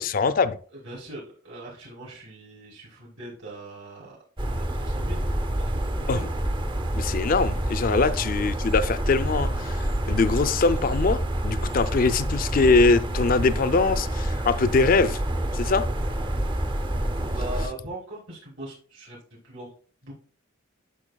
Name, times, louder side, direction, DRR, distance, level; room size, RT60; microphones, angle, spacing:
voice 1, 0.0-0.6 6.1-6.3 7.0-15.2 15.5-15.9, left 4 dB, 45° left, 0.4 m, -22 dB
voice 2, 0.7-4.2 4.5-6.3 7.3-7.4 7.8-8.5 15.7-16.5 17.3-19.2 19.4-19.7 20.0-20.1, right 1 dB, 65° right, 3.5 m, -41 dB
sound 1, 4.4-17.7, right 1 dB, 25° right, 0.6 m, -27 dB
11.0 x 5.7 x 2.3 m
head